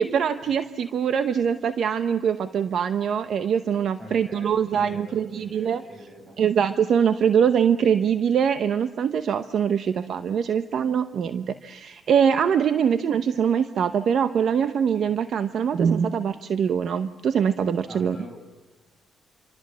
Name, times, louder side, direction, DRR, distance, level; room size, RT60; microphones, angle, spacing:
voice 1, 0.0-5.8 6.4-18.2, right 7 dB, 65° right, 10 dB, 0.9 m, -23 dB
voice 2, 4.0-6.4 17.9-18.4, equal, 30° right, 5 dB, 7.4 m, -44 dB
27.0 x 25.5 x 7.5 m, 1.2 s
cardioid pair, 90°, 0 cm